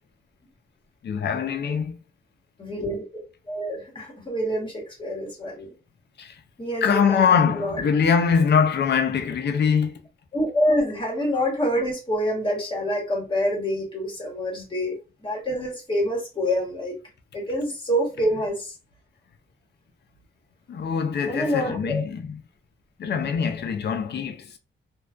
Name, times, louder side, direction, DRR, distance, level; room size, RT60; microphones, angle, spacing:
voice 1, 1.0-2.0 6.2-6.4 6.8-10.0 20.7-22.4 23.0-24.6, left 6 dB, 55° left, 0.4 m, -23 dB
voice 2, 2.6-3.0 3.4-5.7 6.6-7.8 10.3-16.9 17.3-18.7 21.3-22.0, equal, 25° left, 1.2 m, -26 dB
2.3 x 2.2 x 2.4 m
wide cardioid pair, 150°, 21 cm